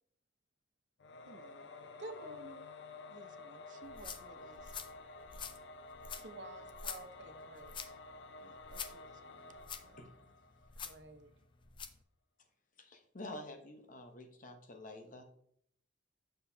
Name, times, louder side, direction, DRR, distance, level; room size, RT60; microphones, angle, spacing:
Singing / Musical instrument, 1.0-11.0, left 3 dB, 80° left, 0.5 m, -52 dB
voice 1, 1.3-1.7 3.1-4.7 8.4-10.0, right 3 dB, 45° right, 10 dB, 0.5 m, -59 dB
voice 2, 2.0-2.7 6.1-7.7 10.8-11.3, right 2 dB, 80° right, 5 dB, 1.1 m, -50 dB
sound 1, 3.8-12.0, left 6 dB, 30° left, 0.5 m, -48 dB
voice 3, 10.0-10.3 12.8-15.2, left 1 dB, 50° left, 5 dB, 1.0 m, -49 dB
8.1 x 6.6 x 2.8 m, 0.67 s
head